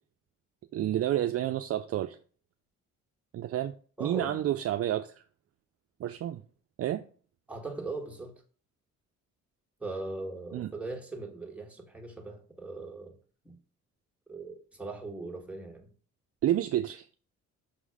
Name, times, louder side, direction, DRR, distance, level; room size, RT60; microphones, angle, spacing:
voice 1, 0.7-2.2 3.3-3.7 4.0-5.2 6.0-6.4 6.8-7.0 10.5-10.7 16.4-17.1, right 12 dB, 50° right, 0.4 m, -29 dB
voice 2, 4.0-4.5 7.5-8.3 9.8-13.1 13.4-13.6 14.3-15.9, right 3 dB, 5° right, 1.6 m, -39 dB
6.2 x 3.8 x 4.8 m
cardioid pair, 90°, 30 cm